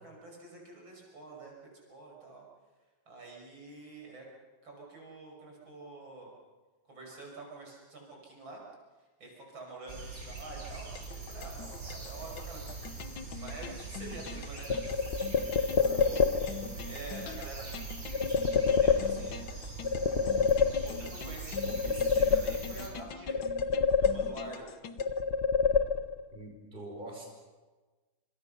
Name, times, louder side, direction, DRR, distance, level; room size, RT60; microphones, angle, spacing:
voice 1, 0.0-1.5 1.9-2.4 3.1-4.2 4.6-6.3 6.9-8.6 9.2-12.6 13.4-14.7 15.8-16.5 16.8-17.8 18.1-19.4 19.9-23.4 24.0-24.7, right 3 dB, 70° right, -1 dB, 6.7 m, -47 dB
sound 1, 9.9-22.9, right 4 dB, 40° right, 6.1 m, -42 dB
sound 2, 10.9-25.2, left 6 dB, 65° left, 1.7 m, -45 dB
sound 3, 14.7-16.7 18.1-19.5 19.8-21.2 21.5-22.9 23.3-24.6 25.0-26.3, left 5 dB, 40° left, 1.0 m, -27 dB
voice 2, 15.7-16.4 26.3-27.2, right 1 dB, 25° right, 0 dB, 5.1 m, -43 dB
28.0 x 26.5 x 5.7 m, 1.3 s
omnidirectional pair, 2.3 m